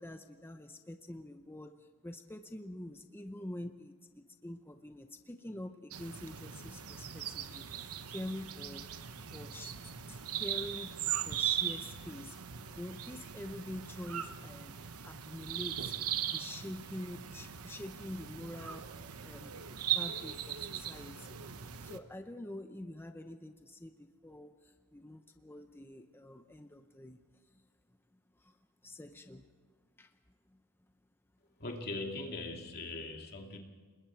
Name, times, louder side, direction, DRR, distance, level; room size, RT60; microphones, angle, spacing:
voice 1, 0.0-9.7 10.0-11.0 11.2-15.9 16.2-19.6 19.9-27.6 28.4-28.6 28.8-29.5 30.0-30.1 30.5-30.6, left 1 dB, 10° left, 7 dB, 0.7 m, -46 dB
sound 1, 5.9-22.0, right 10 dB, 70° right, 1.0 m, -39 dB
voice 2, 31.6-33.6, left 2 dB, 45° left, 1 dB, 2.7 m, -40 dB
29.0 x 20.5 x 4.6 m, 1.5 s
head